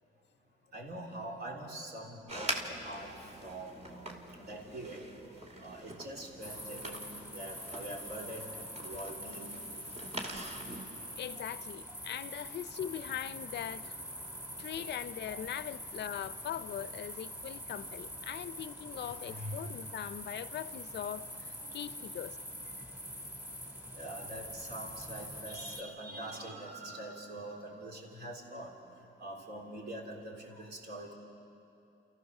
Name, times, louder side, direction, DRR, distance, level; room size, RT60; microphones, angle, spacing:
voice 1, 0.7-9.6 14.3-14.7 15.3-15.4 15.9-16.0 18.9-20.0 21.6-21.9 22.8-22.9 23.9-31.1, right 1 dB, 55° right, 3.7 m, -44 dB
sound 1, 2.3-10.8, right 1 dB, 35° right, 2.5 m, -44 dB
sound 2, 6.4-25.8, equal, 10° right, 2.4 m, -45 dB
voice 2, 11.2-14.0 14.6-22.4, left 10 dB, 60° left, 0.6 m, -41 dB
29.0 x 14.5 x 6.5 m
cardioid pair, 90°, 20 cm